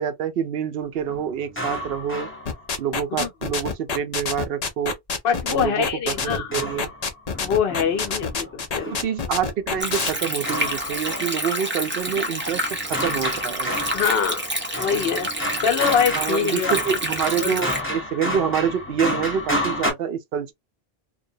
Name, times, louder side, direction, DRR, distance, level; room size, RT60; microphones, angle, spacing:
voice 1, 0.0-2.3 2.8-5.0 5.5-6.9 8.8-13.8 16.2-20.5, right 8 dB, 70° right, 0.8 m, -27 dB
sound 1, 1.1-3.0 6.2-9.1 9.7-11.7 12.1-19.9, left 1 dB, 15° left, 0.9 m, -31 dB
sound 2, 2.5-10.1, left 5 dB, 45° left, 0.6 m, -27 dB
voice 2, 5.2-6.5 7.4-9.1 13.9-15.3 15.6-16.7 17.4-17.6, left 7 dB, 75° left, 0.9 m, -24 dB
Stream, 9.8-17.8, right 1 dB, 15° right, 0.6 m, -28 dB
2.2 x 2.2 x 2.6 m
omnidirectional pair, 1.0 m